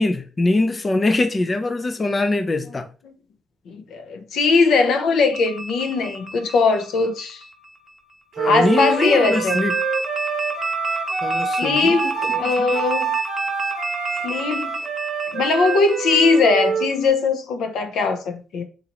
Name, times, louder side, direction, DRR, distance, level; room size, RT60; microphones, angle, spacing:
voice 1, 0.0-2.9 8.4-9.8 11.2-12.8, left 2 dB, 30° left, 0.4 m, -23 dB
voice 2, 3.7-7.4 8.4-9.6 11.5-13.1 14.2-14.8 15.3-18.6, left 4 dB, 75° left, 0.6 m, -20 dB
sound 1, 5.3-7.9 8.8-17.1, equal, 15° right, 0.8 m, -31 dB
Wind instrument woodwind instrument, 8.4-16.9, right 7 dB, 65° right, 0.6 m, -26 dB
3.9 x 3.0 x 2.9 m
cardioid pair, 90°, 0 cm